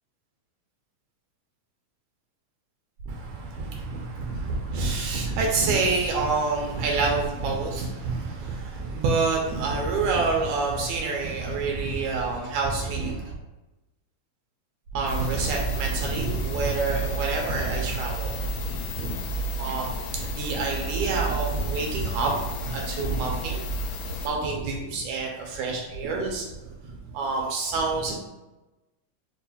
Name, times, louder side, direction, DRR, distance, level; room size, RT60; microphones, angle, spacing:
voice 1, 3.1-13.3 14.9-19.1 19.6-22.3 22.7-23.6 24.2-26.5 27.1-28.1, right 4 dB, 80° right, 0 dB, 1.9 m, -27 dB
sound 1, 15.1-24.3, right 1 dB, 90° left, 2.1 m, -31 dB
5.3 x 2.4 x 2.7 m, 1.1 s
omnidirectional pair, 3.6 m